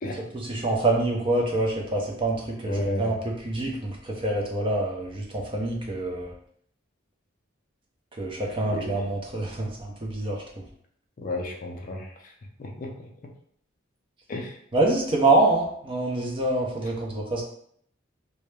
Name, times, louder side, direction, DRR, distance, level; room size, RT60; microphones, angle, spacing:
voice 1, 0.3-3.1 3.4-6.3 8.2-10.4 14.7-17.4, right 2 dB, 25° right, -1 dB, 0.4 m, -26 dB
voice 2, 2.7-3.1 8.6-9.0 11.2-12.1 12.6-13.1 14.3-14.6, left 1 dB, 40° left, 1 dB, 0.4 m, -32 dB
2.2 x 2.0 x 3.0 m, 0.65 s
head